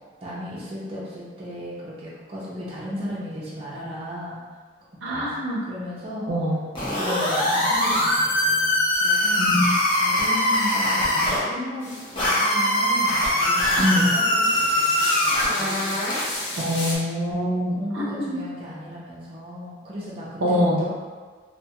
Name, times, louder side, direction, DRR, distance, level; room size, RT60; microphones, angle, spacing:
voice 1, 0.2-4.4 5.1-5.3 5.6-6.3 6.9-9.4 9.9-16.0 17.4-20.9, left 1 dB, 30° right, -7 dB, 0.5 m, -35 dB
voice 2, 5.0-5.6 6.3-6.6 9.4-9.6 13.8-14.1 16.6-18.4 20.4-20.8, equal, 85° right, -4 dB, 0.5 m, -24 dB
sound 1, 6.7-11.4 12.2-16.3, left 1 dB, 25° left, 0.6 m, -22 dB
sound 2, 11.8-17.0, left 2 dB, 75° left, 0.6 m, -35 dB
2.3 x 2.3 x 2.8 m, 1.5 s
head